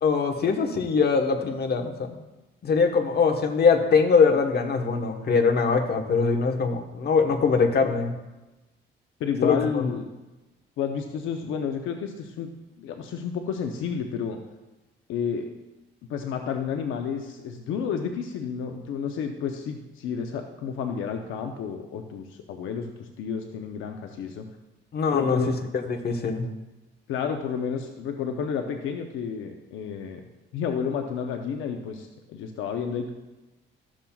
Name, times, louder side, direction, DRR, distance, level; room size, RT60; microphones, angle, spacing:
voice 1, 0.0-2.2 2.6-8.1 9.4-9.9 24.9-25.4 25.9-26.5, left 5 dB, 55° left, 4 dB, 1.2 m, -22 dB
voice 2, 9.2-10.1 10.8-12.5 12.8-14.4 15.1-15.4 16.1-24.5 25.1-25.5 27.1-30.2 30.5-33.1, left 7 dB, 85° left, 4 dB, 0.7 m, -31 dB
13.5 x 7.3 x 2.3 m, 1.1 s
cardioid pair, 90°, 20 cm